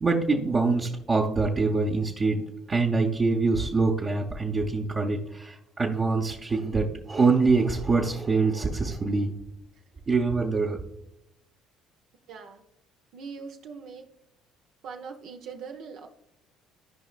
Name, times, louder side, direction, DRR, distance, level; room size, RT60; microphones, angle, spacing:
voice 1, 0.0-9.3 10.1-10.8, right 4 dB, 35° right, -1 dB, 1.0 m, -25 dB
voice 2, 12.3-12.6 13.1-14.1 14.8-16.1, right 5 dB, 65° right, 3 dB, 0.8 m, -41 dB
14.0 x 5.0 x 2.4 m, 0.81 s
hypercardioid pair, 65°, 0 cm